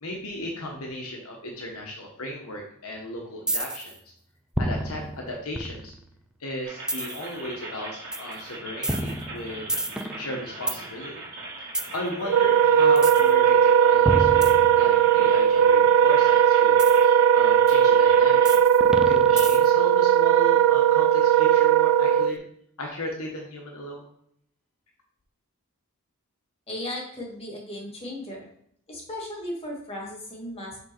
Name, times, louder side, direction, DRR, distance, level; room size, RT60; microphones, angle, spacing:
voice 1, 0.0-4.1 4.6-5.9 6.4-9.7 10.2-11.3 11.6-18.5 19.0-22.4 22.8-24.0, left 1 dB, 70° left, 0 dB, 1.2 m, -36 dB
sound 1, 3.5-4.0 4.5-6.1 6.9-7.3 8.1-8.3 8.8-10.8 11.7-12.0 13.0-13.3 14.1-15.2 16.8-17.0 17.7-17.8 18.4-19.8, right 1 dB, 5° right, 0.5 m, -29 dB
sound 2, 6.6-18.6, right 2 dB, 45° right, 2.1 m, -40 dB
Wind instrument woodwind instrument, 12.2-22.3, right 9 dB, 70° right, 0.4 m, -18 dB
voice 2, 26.7-28.5 28.9-30.8, left 1 dB, 25° left, -3 dB, 2.1 m, -36 dB
6.3 x 3.8 x 4.4 m, 0.71 s
head